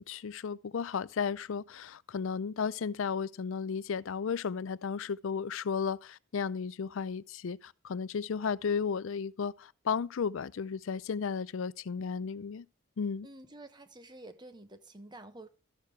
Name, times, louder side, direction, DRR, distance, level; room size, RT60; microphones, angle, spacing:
voice 1, 0.0-12.7 13.0-13.3, left 6 dB, 65° left, 0.4 m, -34 dB
voice 2, 13.2-15.5, right 2 dB, 20° right, 0.9 m, -49 dB
13.0 x 6.6 x 3.4 m
head